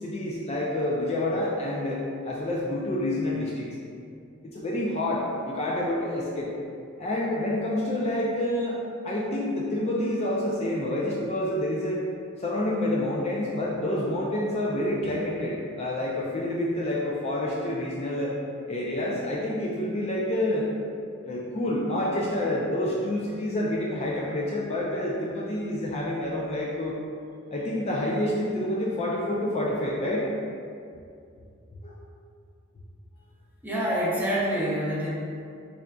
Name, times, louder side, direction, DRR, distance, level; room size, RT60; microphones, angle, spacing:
voice 1, 0.0-3.7 4.4-6.5 7.0-12.0 12.4-18.4 18.7-20.7 21.2-27.0 27.5-30.3 31.8-31.9, left 1 dB, 30° left, -4 dB, 0.3 m, -28 dB
voice 2, 33.6-35.1, equal, 10° right, -7 dB, 0.7 m, -26 dB
3.7 x 3.5 x 2.2 m, 2.4 s
head